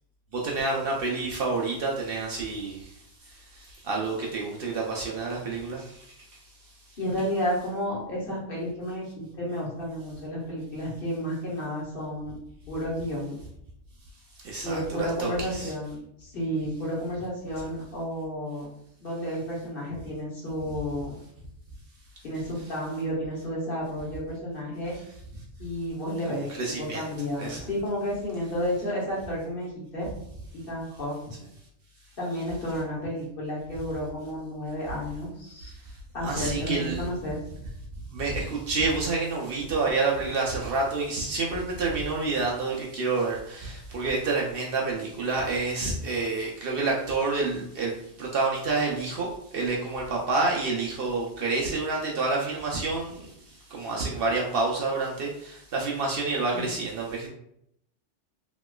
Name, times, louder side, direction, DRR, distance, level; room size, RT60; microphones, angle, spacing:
voice 1, 0.3-7.0 14.4-15.7 26.3-27.1 27.4-27.7 35.6-37.1 38.1-57.3, right 3 dB, 65° right, -2 dB, 0.7 m, -29 dB
voice 2, 7.0-12.3 12.7-13.4 14.6-18.7 19.0-21.1 22.2-24.9 25.6-26.5 26.8-30.1 30.5-31.1 32.2-35.7 36.1-37.4 56.5-56.7, equal, 50° left, -5 dB, 1.1 m, -31 dB
3.0 x 2.9 x 2.2 m, 0.75 s
omnidirectional pair, 1.2 m